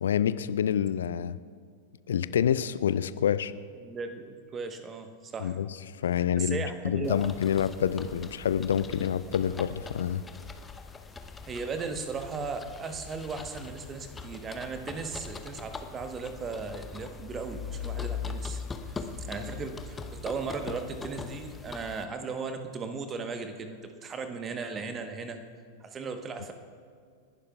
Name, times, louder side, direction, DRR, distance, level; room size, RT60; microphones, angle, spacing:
voice 1, 0.0-1.4 2.1-3.5 5.4-5.7 6.0-10.2, left 9 dB, 65° left, 16 dB, 0.4 m, -27 dB
voice 2, 3.8-5.6 6.4-7.2 11.4-18.6 18.9-25.4 25.8-26.5, right 4 dB, 25° right, 7 dB, 1.1 m, -37 dB
sound 1, 7.0-22.0, left 5 dB, 15° left, 0.8 m, -41 dB
29.5 x 11.5 x 2.4 m, 2.1 s
figure-of-eight pair, 90°, 0 cm